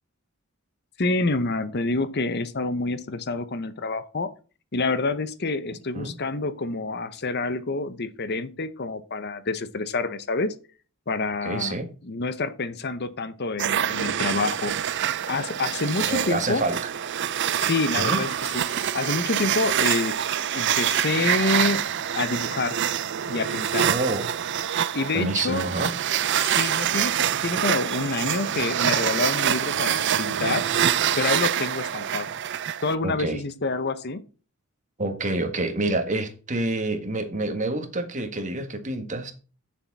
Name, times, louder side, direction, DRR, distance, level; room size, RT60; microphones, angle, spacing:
voice 1, 1.0-4.3 4.7-10.5 11.1-11.7 12.0-16.6 17.5-18.3 18.5-20.2 20.5-21.8 22.1-22.8 23.3-23.9 24.9-25.7 26.3-30.6 30.9-32.3 32.8-34.2, left 3 dB, 50° left, 0.9 m, -27 dB
voice 2, 11.4-11.9 15.9-16.8 18.0-18.2 23.8-24.3 25.1-25.9 33.0-33.4 35.0-39.3, right 2 dB, 35° right, 1.7 m, -27 dB
sound 1, 13.6-32.9, right 10 dB, 55° right, 0.5 m, -26 dB
9.8 x 7.2 x 4.2 m
head